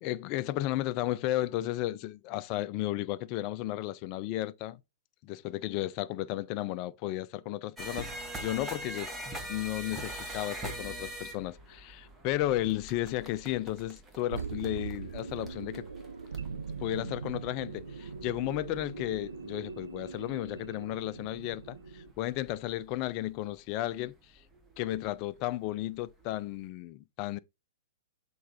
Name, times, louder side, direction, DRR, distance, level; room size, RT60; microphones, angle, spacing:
voice 1, 0.0-4.8 5.2-9.1 9.5-15.9 16.8-24.1 24.8-27.4, left 15 dB, 35° left, 0.4 m, -34 dB
sound 1, 7.8-23.1 23.9-24.1 24.4-25.1 25.7-25.8 26.2-26.3, right 1 dB, 10° right, 1.3 m, -43 dB
sound 2, 10.6-11.2 11.7-11.8 14.3-22.1, right 5 dB, 70° right, 0.7 m, -41 dB
6.5 x 4.4 x 3.9 m
figure-of-eight pair, 105°, 0 cm